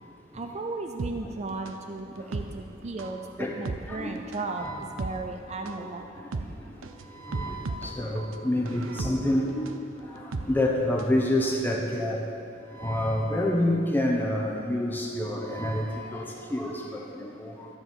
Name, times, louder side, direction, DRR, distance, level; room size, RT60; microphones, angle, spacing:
voice 1, 0.3-6.1 6.3-6.4, right 3 dB, 35° right, 4 dB, 0.5 m, -35 dB
sound 1, 1.0-11.2 11.5-11.6, right 3 dB, 80° right, 0.6 m, -37 dB
voice 2, 7.2-9.7 10.1-10.2 10.5-12.2 12.7-17.7, left 1 dB, 10° left, -1 dB, 1.0 m, -28 dB
13.0 x 4.8 x 7.4 m, 2.6 s
head